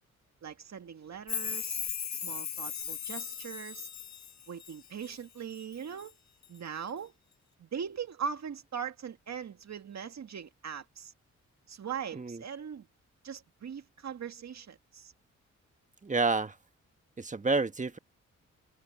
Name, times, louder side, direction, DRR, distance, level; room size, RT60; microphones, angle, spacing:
voice 1, 0.4-1.8 2.1-3.9 4.5-6.2 6.5-7.1 7.6-11.1 11.7-12.9 13.2-15.1, right 7 dB, 65° right, 2.1 m, -40 dB
Chime, 1.3-5.2 5.6-6.1 6.4-6.5, left 7 dB, 65° left, 1.8 m, -37 dB
voice 2, 16.0-16.6 17.2-18.0, right 3 dB, 25° right, 1.3 m, -29 dB
cardioid pair, 75°, 30 cm